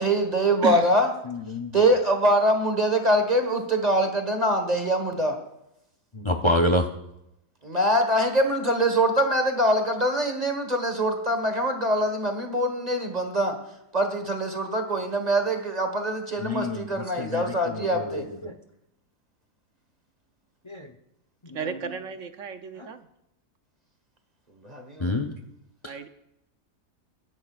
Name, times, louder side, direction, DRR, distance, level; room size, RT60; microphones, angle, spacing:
voice 1, 0.0-1.1 1.7-5.4 7.6-13.6 13.9-18.3 24.6-25.1, right 1 dB, 25° right, 5 dB, 1.4 m, -24 dB
voice 2, 1.3-1.7 6.1-6.9 16.4-18.6 20.7-20.9 21.4-21.6 25.0-25.3 25.8-25.9, left 1 dB, 35° left, 5 dB, 0.4 m, -28 dB
voice 3, 21.5-23.1 25.8-26.1, right 5 dB, 55° right, 8 dB, 1.0 m, -33 dB
24.0 x 11.0 x 2.4 m, 0.85 s
omnidirectional pair, 1.7 m